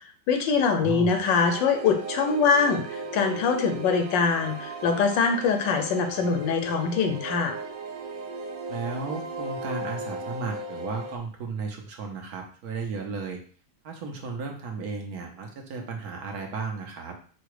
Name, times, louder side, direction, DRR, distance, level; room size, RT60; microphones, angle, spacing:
voice 1, 0.3-7.6, left 5 dB, 85° left, 5 dB, 1.5 m, -23 dB
voice 2, 0.8-1.1 8.7-13.4 13.8-17.1, right 4 dB, 65° right, 2 dB, 1.2 m, -34 dB
sound 1, 1.1-11.2, right 2 dB, 85° right, 1.5 m, -37 dB
5.0 x 2.2 x 4.7 m, 0.41 s
omnidirectional pair, 1.9 m